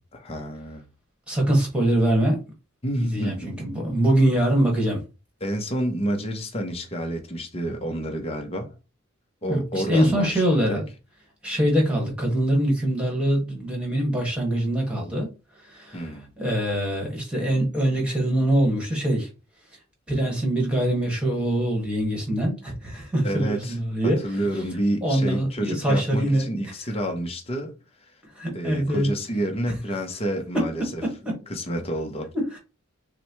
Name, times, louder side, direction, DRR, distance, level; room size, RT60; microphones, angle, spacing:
voice 1, 0.1-0.8 2.8-3.7 5.4-8.7 9.4-10.8 15.9-16.3 23.2-23.8 24.0-27.8 28.5-31.0 31.5-32.3, equal, 25° left, 0.8 m, -29 dB
voice 2, 1.3-2.4 3.0-5.0 9.5-10.9 11.4-15.3 15.6-16.0 16.4-19.3 20.1-24.2 25.0-26.5 28.3-29.1 30.5-31.4 32.3-32.6, right 1 dB, 5° right, 1.5 m, -23 dB
5.9 x 2.2 x 3.0 m
head